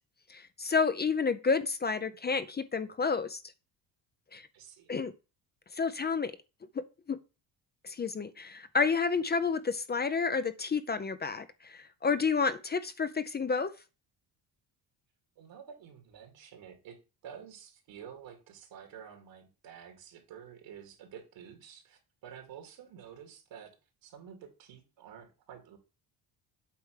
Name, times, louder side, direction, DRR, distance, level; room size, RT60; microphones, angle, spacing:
voice 1, 0.3-3.4 4.3-4.5 4.9-5.1 5.7-6.3 7.1-7.2 7.8-13.7, left 5 dB, 25° left, 0.5 m, -30 dB
voice 2, 4.5-4.9 15.4-17.0 17.2-23.7 24.0-25.8, right 8 dB, 75° right, 2.6 m, -50 dB
8.4 x 3.4 x 6.4 m
cardioid pair, 115°, 45 cm